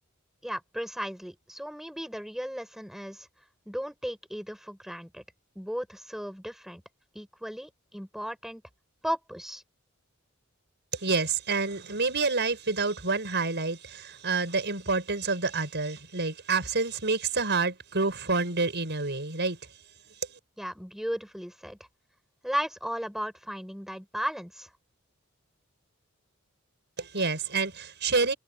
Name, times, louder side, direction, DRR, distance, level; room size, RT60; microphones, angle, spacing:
voice 1, 0.4-3.3 3.7-5.2 5.6-6.8 7.1-8.6 9.0-9.6 20.6-21.8 22.4-24.7, equal, ahead, 7.6 m, -35 dB
voice 2, 10.9-19.6 27.0-28.3, right 4 dB, 55° right, 6.0 m, -28 dB
head